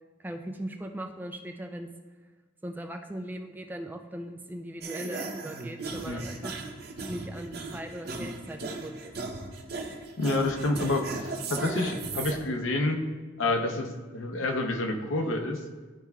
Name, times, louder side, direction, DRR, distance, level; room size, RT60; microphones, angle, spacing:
voice 1, 0.2-1.9 2.6-6.6 7.1-9.1, right 1 dB, 10° right, 4 dB, 0.3 m, -39 dB
sound 1, 4.8-12.4, right 3 dB, 55° right, 0.7 m, -37 dB
voice 2, 10.2-13.0 13.4-15.6, left 2 dB, 85° left, 4 dB, 0.7 m, -28 dB
11.5 x 4.3 x 2.3 m, 1.3 s
head